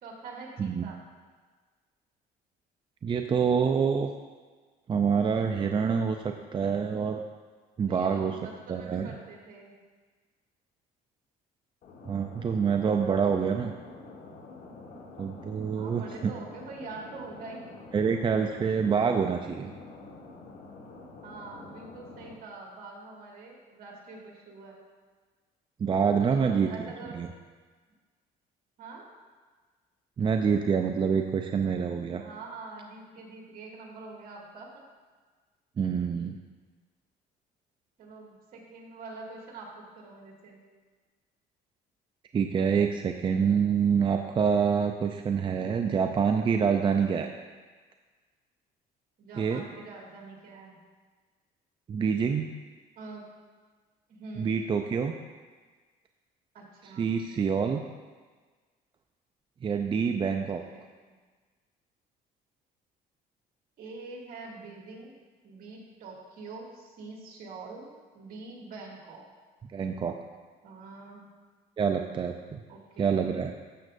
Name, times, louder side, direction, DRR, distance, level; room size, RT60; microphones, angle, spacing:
voice 1, 0.0-1.0 7.9-9.7 15.7-17.6 21.2-24.8 26.2-27.2 28.8-29.1 32.2-34.7 38.0-40.6 49.2-50.8 53.0-53.3 54.1-54.6 56.5-57.1 60.5-61.2 63.8-65.1 65.4-69.3 70.6-71.3 72.7-73.4, right 3 dB, 60° right, -2 dB, 2.2 m, -45 dB
voice 2, 3.0-4.1 4.9-7.2 7.8-8.4 8.7-9.1 12.1-13.7 15.2-16.0 17.9-19.7 25.8-27.3 30.2-32.2 35.8-36.4 42.3-47.3 49.4-49.6 51.9-52.5 54.4-55.1 57.0-57.8 59.6-60.6 69.7-70.2 71.8-72.6 73.0-73.5, right 6 dB, 30° right, 5 dB, 0.4 m, -26 dB
sound 1, 11.8-22.3, left 3 dB, 60° left, 1.4 m, -47 dB
12.5 x 7.4 x 2.6 m, 1.4 s
cardioid pair, 110°, 17 cm